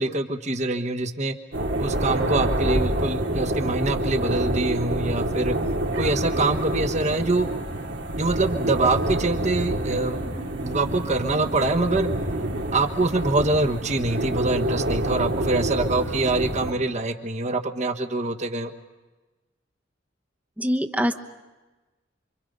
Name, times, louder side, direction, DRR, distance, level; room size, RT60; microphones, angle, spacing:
voice 1, 0.0-1.4 1.8-5.6 6.0-7.5 8.2-10.2 10.6-12.1 12.7-18.7, right 2 dB, 40° right, 6 dB, 1.3 m, -24 dB
sound 1, 1.5-16.7, right 1 dB, 80° right, 2.5 m, -27 dB
voice 2, 20.6-21.1, equal, 10° right, 5 dB, 1.0 m, -23 dB
28.0 x 24.5 x 5.4 m, 1.2 s
head